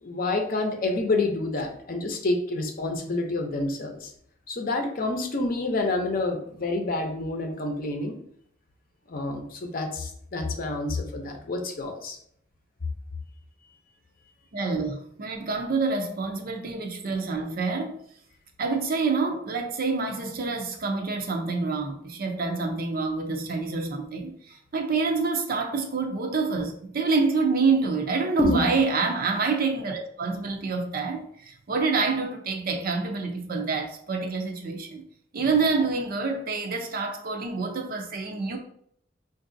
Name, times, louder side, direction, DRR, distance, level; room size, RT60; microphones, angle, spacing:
voice 1, 0.0-4.1 4.5-8.2 9.1-12.2 28.4-28.6, left 2 dB, 50° left, 0.6 m, -28 dB
voice 2, 14.5-18.0 18.6-35.0 35.3-38.6, right 4 dB, 55° right, 0.5 m, -27 dB
4.6 x 2.6 x 2.6 m
head